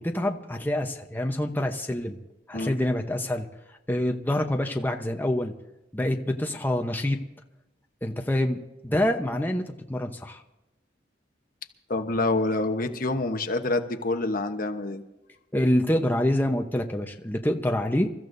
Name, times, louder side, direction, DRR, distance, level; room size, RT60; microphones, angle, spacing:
voice 1, 0.0-2.2 2.5-3.5 3.9-5.5 5.9-7.2 8.0-10.4 15.5-18.1, left 1 dB, 10° left, 3 dB, 0.9 m, -26 dB
voice 2, 11.9-15.0, left 2 dB, 50° left, 6 dB, 1.1 m, -27 dB
28.0 x 14.5 x 2.7 m, 0.96 s
head